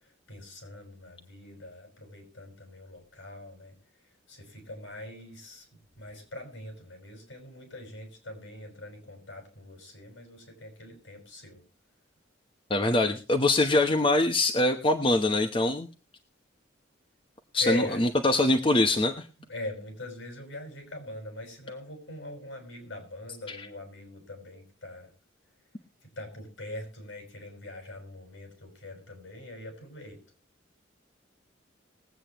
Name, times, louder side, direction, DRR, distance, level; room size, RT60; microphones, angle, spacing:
voice 1, 0.3-3.8 4.3-5.7 5.9-11.6 17.6-18.1 19.4-25.1 26.2-30.2, left 2 dB, 70° left, 3 dB, 5.8 m, -42 dB
voice 2, 12.7-15.9 17.5-19.3 23.5-23.7, left 2 dB, 25° left, 4 dB, 1.0 m, -24 dB
21.5 x 8.5 x 3.1 m, 0.34 s
head